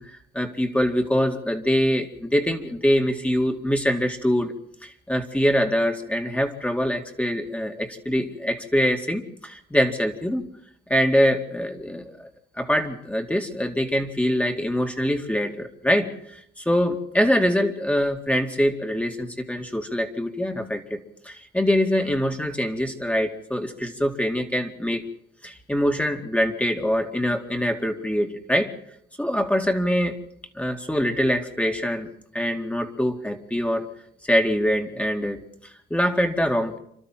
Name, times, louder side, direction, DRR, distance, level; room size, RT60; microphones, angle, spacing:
voice 1, 0.0-10.4 10.9-12.3 12.6-25.0 25.4-28.7 29.2-30.2 30.5-33.9 34.2-36.8, equal, 5° left, 4 dB, 2.2 m, -24 dB
28.0 x 12.5 x 7.6 m, 0.73 s
cardioid pair, 90°, 20 cm